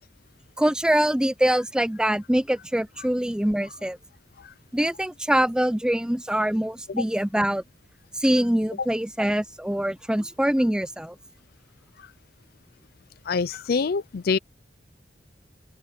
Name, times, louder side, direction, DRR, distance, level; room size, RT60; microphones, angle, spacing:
voice 1, 0.6-4.0 4.7-7.6 8.2-11.1, right 1 dB, 5° right, 0.6 m, -24 dB
voice 2, 13.2-14.4, left 5 dB, 60° left, 0.5 m, -26 dB
open air
head